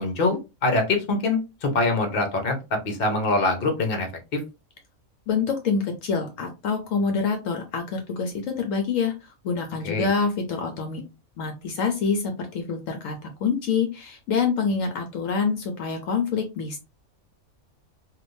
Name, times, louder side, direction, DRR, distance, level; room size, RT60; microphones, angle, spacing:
voice 1, 0.0-2.5 2.8-4.4 9.8-10.1, left 2 dB, 45° left, 4 dB, 0.9 m, -24 dB
voice 2, 5.3-11.0 11.4-16.8, left 5 dB, 70° left, 4 dB, 1.0 m, -26 dB
3.4 x 2.6 x 2.6 m, 0.26 s
omnidirectional pair, 1.5 m